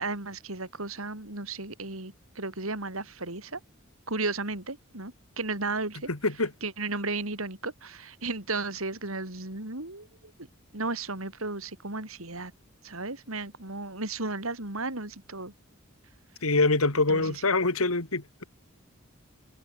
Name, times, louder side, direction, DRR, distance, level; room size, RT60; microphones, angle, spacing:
voice 1, 0.0-3.6 4.1-6.1 6.6-10.3 10.7-12.5 12.8-15.5 17.1-17.4, right 3 dB, 80° right, 4.8 m, -34 dB
voice 2, 6.1-6.5 16.4-18.4, left 3 dB, 85° left, 2.7 m, -25 dB
head